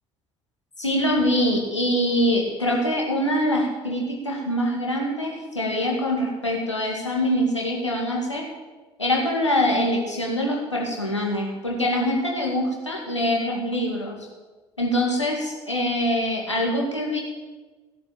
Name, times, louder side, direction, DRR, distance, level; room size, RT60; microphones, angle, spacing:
voice 1, 0.8-8.4 9.0-14.2 14.8-17.2, equal, 90° left, -1 dB, 2.3 m, -24 dB
16.5 x 7.9 x 8.9 m, 1.3 s
figure-of-eight pair, 50°, 15 cm